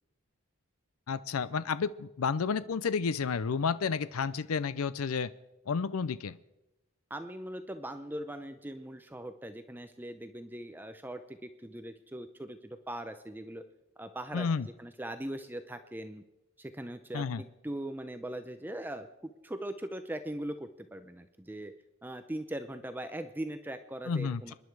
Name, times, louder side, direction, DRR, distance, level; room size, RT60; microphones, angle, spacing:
voice 1, 1.1-5.3 5.7-6.4 14.3-14.7 17.1-17.4 24.1-24.5, left 5 dB, 80° left, 16 dB, 0.5 m, -31 dB
voice 2, 7.1-13.6 14.0-14.5 14.8-16.2 16.6-21.7 22.0-24.5, right 1 dB, 10° right, 9 dB, 0.6 m, -40 dB
26.5 x 10.5 x 4.7 m, 0.96 s
head